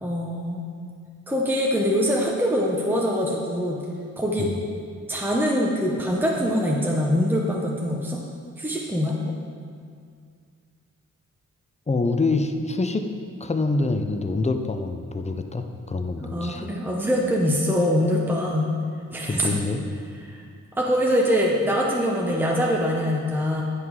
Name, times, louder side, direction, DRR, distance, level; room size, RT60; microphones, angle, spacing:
voice 1, 0.0-0.7 1.3-3.8 4.2-4.5 5.1-8.2 8.6-9.2 16.3-18.7 19.1-19.6 20.2-20.3 20.8-23.6, equal, 5° right, -2 dB, 0.9 m, -23 dB
voice 2, 11.9-13.1 13.4-16.7 19.2-19.8, left 3 dB, 20° left, 6 dB, 0.6 m, -26 dB
9.3 x 5.9 x 4.7 m, 2.2 s
wide cardioid pair, 100°, 30 cm